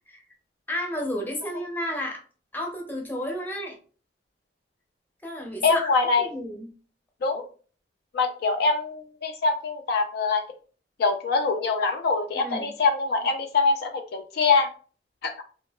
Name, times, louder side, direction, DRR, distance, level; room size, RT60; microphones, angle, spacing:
voice 1, 0.7-2.2 2.5-3.8 5.2-6.7 12.3-12.7, equal, 10° left, 0 dB, 0.6 m, -32 dB
voice 2, 5.6-6.3 7.2-7.5 8.1-10.4 11.0-14.7 15.2-15.3, left 4 dB, 60° left, 4 dB, 0.4 m, -24 dB
2.7 x 2.3 x 2.2 m, 0.39 s
head